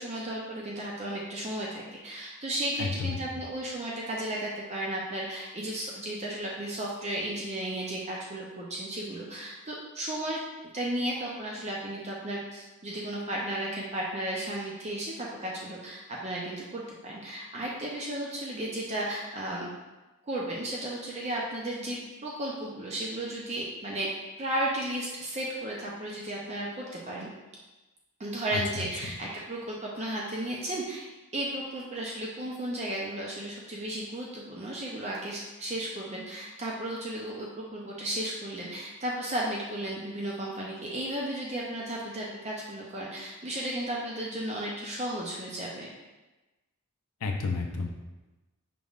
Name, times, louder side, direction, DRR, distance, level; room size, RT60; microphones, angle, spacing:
voice 1, 0.0-10.4 10.7-19.7 20.3-24.1 24.4-27.3 28.2-31.1 31.3-45.9, right 1 dB, 30° right, -3 dB, 0.5 m, -34 dB
voice 2, 2.8-3.1 47.2-47.9, left 4 dB, 75° left, 2 dB, 0.5 m, -30 dB
5.1 x 3.5 x 2.4 m, 1.1 s
head